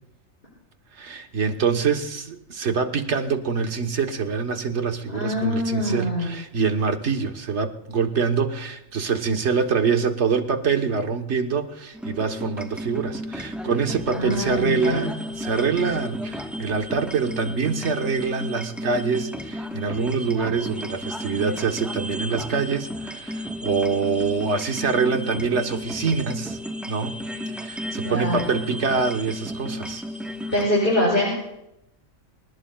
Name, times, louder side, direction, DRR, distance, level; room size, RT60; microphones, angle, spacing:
voice 1, 0.9-26.6 26.9-27.2 27.6-30.0, right 5 dB, 60° right, 5 dB, 1.5 m, -25 dB
voice 2, 5.1-6.3 14.1-15.1 28.0-28.4 30.5-31.3, left 1 dB, 40° left, -7 dB, 6.8 m, -24 dB
sound 1, 11.9-30.7, equal, ahead, 1.2 m, -33 dB
27.5 x 19.5 x 2.4 m, 0.84 s
omnidirectional pair, 1.4 m